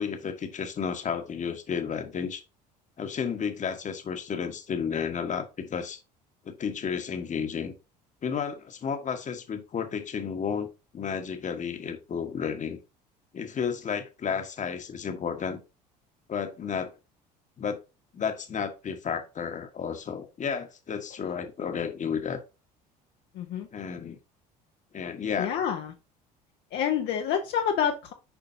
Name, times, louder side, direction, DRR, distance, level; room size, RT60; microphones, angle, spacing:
voice 1, 0.0-2.4 3.0-6.0 6.4-7.7 8.2-12.8 13.3-15.6 16.3-16.9 17.6-17.8 18.1-22.4 23.7-24.2 24.9-25.5, left 6 dB, 35° left, 1.3 m, -32 dB
voice 2, 23.3-23.7 25.4-25.9 26.7-28.1, left 8 dB, 60° left, 1.0 m, -27 dB
7.2 x 5.0 x 2.7 m
hypercardioid pair, 65°, 21 cm